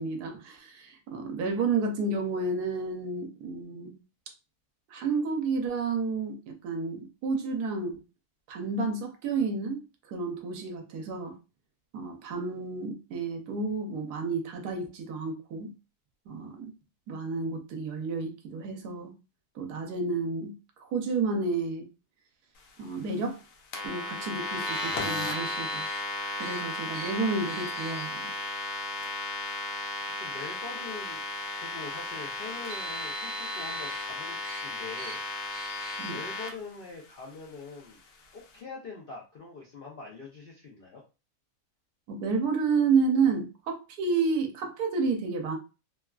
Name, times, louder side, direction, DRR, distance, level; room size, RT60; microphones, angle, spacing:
voice 1, 0.0-3.9 4.9-8.0 8.5-9.8 10.1-11.3 11.9-15.7 16.3-16.7 17.1-19.1 19.6-20.5 20.8-21.9 22.8-23.4 23.8-25.8 26.4-28.5 36.0-36.2 42.1-45.6, right 4 dB, 85° right, 1.2 m, -30 dB
sound 1, 23.7-36.5, left 2 dB, 90° left, 1.2 m, -34 dB
Car, 24.7-26.0 26.4-26.6 26.9-27.1 27.5-28.1 28.9-29.1 30.0-30.1 32.4-34.0 34.4-34.6 35.0-35.2 35.5-36.1, right 3 dB, 55° right, 1.2 m, -42 dB
voice 2, 30.1-35.2 36.1-38.0 38.3-41.0, left 4 dB, 65° left, 0.5 m, -43 dB
3.2 x 2.3 x 2.3 m
omnidirectional pair, 1.6 m